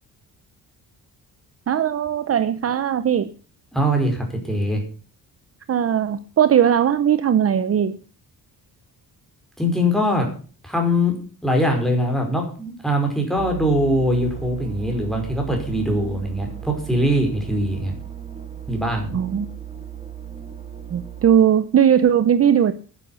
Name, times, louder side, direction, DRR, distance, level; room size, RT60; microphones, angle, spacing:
voice 1, 1.7-3.3 5.7-8.0 19.1-19.5 20.9-22.7, right 9 dB, 40° right, 0.7 m, -18 dB
voice 2, 3.7-4.8 9.6-10.3 10.6-11.2 11.4-17.9 18.7-19.2, equal, ahead, 5.3 m, -22 dB
sound 1, 13.4-21.4, right 9 dB, 15° right, 2.4 m, -36 dB
11.0 x 11.0 x 8.1 m
wide cardioid pair, 155°, 38 cm